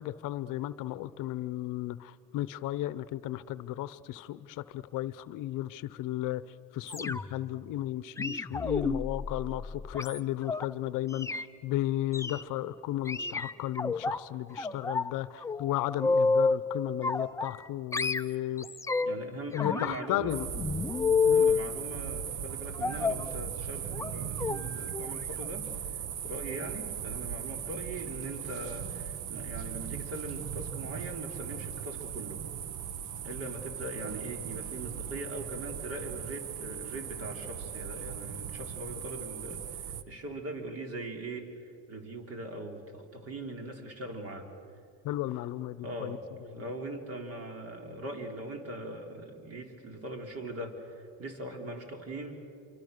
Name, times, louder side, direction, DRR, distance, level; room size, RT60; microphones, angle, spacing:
voice 1, 0.0-6.4 6.7-18.7 19.5-20.5 21.2-21.5 45.0-46.2, left 14 dB, 65° left, 16 dB, 0.8 m, -34 dB
sound 1, 6.9-7.5 8.2-10.7 11.1-11.5 12.1-12.4 13.1-14.2 14.6-15.1 15.4-16.6 17.0-17.7 17.9-19.2 19.5-21.6 22.8-23.3 23.9-24.1 24.4-24.6 24.9-25.1 25.4-25.5, left 4 dB, 10° left, 0.5 m, -30 dB
voice 2, 19.0-20.4 21.2-32.4 33.2-44.5 45.8-46.2 46.5-52.5, right 1 dB, 45° right, 4 dB, 3.6 m, -41 dB
sound 2, 20.3-40.0, right 9 dB, 60° right, 1.1 m, -38 dB
27.0 x 24.0 x 6.6 m, 2.6 s
cardioid pair, 110°, 35 cm